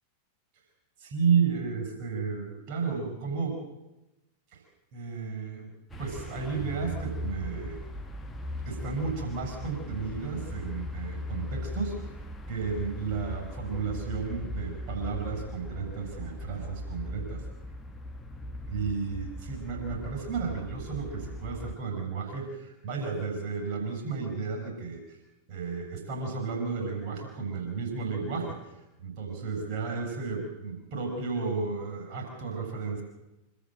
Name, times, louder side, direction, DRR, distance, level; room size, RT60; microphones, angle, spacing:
voice 1, 1.0-3.6 4.5-4.6 4.9-5.7 6.0-7.8 8.6-12.1 12.5-17.4 18.7-25.2 25.5-28.6 29.0-33.0, right 5 dB, 45° right, 2 dB, 7.4 m, -32 dB
sound 1, 5.9-21.8, left 1 dB, 10° left, 1.4 m, -39 dB
26.0 x 13.5 x 7.8 m, 0.98 s
figure-of-eight pair, 90°, 0 cm